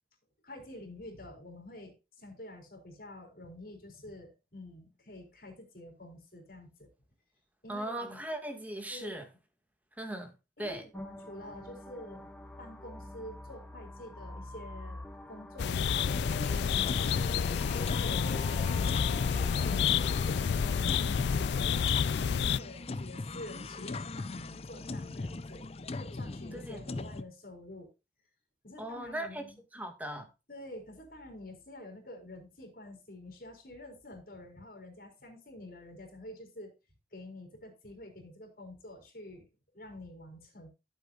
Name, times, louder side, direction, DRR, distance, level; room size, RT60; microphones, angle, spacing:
voice 1, 0.4-6.9 7.6-8.2 8.9-9.3 10.6-12.3 12.6-16.1 16.5-25.6 25.9-27.9 28.6-29.6 30.5-36.7 37.1-39.5 39.7-40.7, left 1 dB, 55° left, 4.2 m, -48 dB
voice 2, 7.7-9.3 10.0-10.3 10.6-10.9 26.5-26.8 28.8-29.4 29.7-30.3, right 1 dB, 10° right, 1.9 m, -38 dB
sound 1, 10.9-22.9, left 1 dB, 5° left, 1.0 m, -47 dB
sound 2, 15.6-22.6, left 7 dB, 80° left, 0.4 m, -29 dB
sound 3, 16.0-27.2, left 3 dB, 35° left, 0.6 m, -39 dB
13.5 x 8.2 x 2.5 m
head